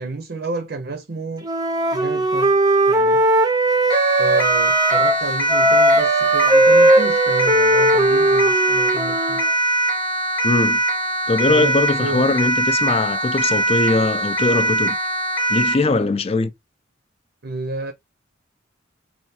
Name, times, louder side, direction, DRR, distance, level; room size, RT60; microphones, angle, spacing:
voice 1, 0.0-1.5 1.9-2.5 2.9-3.2 4.2-9.4 11.5-12.4 17.4-17.9, right 3 dB, 55° right, 0.6 m, -30 dB
Wind instrument woodwind instrument, 1.4-5.2 5.5-9.5, right 1 dB, 20° right, 0.6 m, -17 dB
Siren, 3.9-15.9, right 2 dB, 10° left, 0.8 m, -22 dB
voice 2, 10.4-10.8 11.3-15.0 15.5-16.5, left 3 dB, 30° left, 0.4 m, -20 dB
3.4 x 2.4 x 4.1 m
head